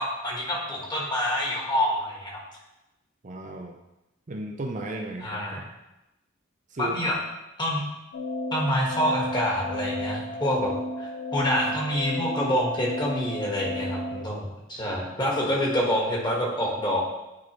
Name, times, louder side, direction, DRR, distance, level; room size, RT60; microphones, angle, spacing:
voice 1, 0.0-2.4 5.2-5.6 6.8-7.2 7.6-7.8 8.5-10.7 11.0-17.0, equal, 25° left, -3 dB, 1.5 m, -27 dB
voice 2, 3.2-3.8 4.3-5.6 6.7-7.0, right 1 dB, 40° right, 2 dB, 0.6 m, -34 dB
sound 1, 8.1-14.2, left 2 dB, 85° left, 0.9 m, -33 dB
9.6 x 4.6 x 3.0 m, 0.96 s
head